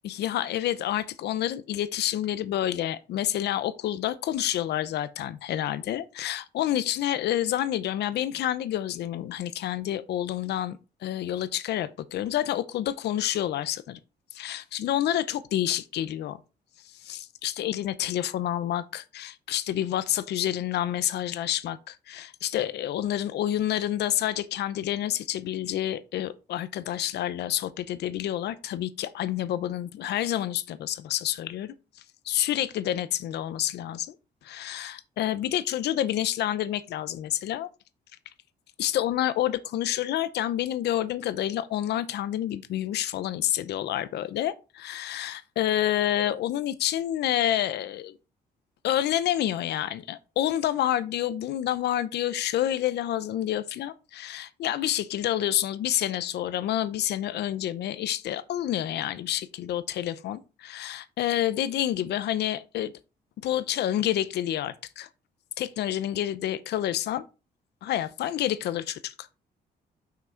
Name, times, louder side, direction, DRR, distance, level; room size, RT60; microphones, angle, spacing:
voice 1, 0.0-14.0 14.3-16.4 17.0-31.7 32.3-34.1 34.4-37.7 38.8-48.1 48.8-62.9 63.4-65.1 65.6-67.2 67.8-69.3, left 12 dB, 80° left, 0.7 m, -28 dB
6.0 x 5.9 x 4.4 m
cardioid pair, 155°, 17 cm